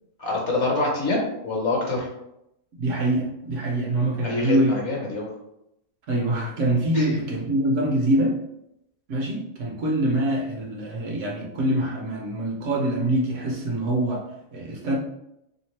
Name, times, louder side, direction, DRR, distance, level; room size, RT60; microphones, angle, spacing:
voice 1, 0.2-2.1 4.2-5.2 6.9-7.1, left 2 dB, 60° left, -2 dB, 1.1 m, -25 dB
voice 2, 2.8-4.7 6.1-8.4 9.1-15.0, right 1 dB, 65° right, 0 dB, 0.9 m, -24 dB
3.3 x 2.8 x 3.1 m, 0.83 s
omnidirectional pair, 1.5 m